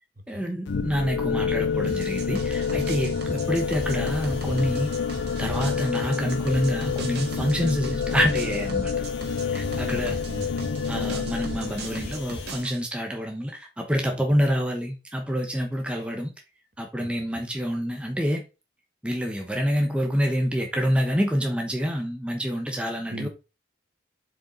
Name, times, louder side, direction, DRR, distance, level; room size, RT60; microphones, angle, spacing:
voice 1, 0.3-4.9 5.4-8.9 9.5-10.2 10.9-16.3 16.8-18.4 19.0-23.3, equal, 5° right, 0.9 m, -27 dB
sound 1, 0.7-12.6, left 6 dB, 65° left, 0.4 m, -28 dB
Mechanisms, 1.3-1.6 2.0-12.5, equal, 35° left, 2.9 m, -50 dB
sound 2, 1.8-12.8, right 2 dB, 60° right, 1.8 m, -39 dB
voice 2, 9.7-10.7 17.0-17.3 23.1-23.3, equal, 45° right, 1.3 m, -38 dB
7.2 x 5.0 x 4.0 m
head